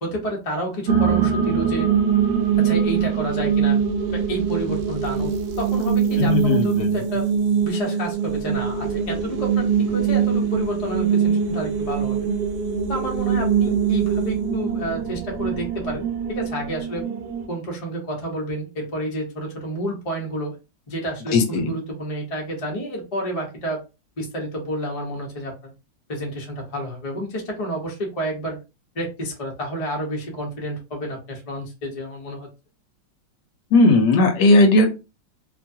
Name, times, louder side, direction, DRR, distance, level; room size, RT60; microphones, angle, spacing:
voice 1, 0.0-1.9 2.6-3.8 4.1-5.3 5.6-7.2 7.6-12.3 12.9-17.1 17.5-20.5 20.9-23.8 24.2-25.7 26.1-28.6 28.9-32.5, equal, 30° left, 0 dB, 0.6 m, -30 dB
sound 1, 0.9-17.5, right 7 dB, 70° right, 1.0 m, -23 dB
voice 2, 6.1-7.0 21.3-21.7 33.7-34.9, left 2 dB, 75° left, 5 dB, 1.2 m, -17 dB
3.0 x 2.3 x 2.6 m, 0.28 s
omnidirectional pair, 2.0 m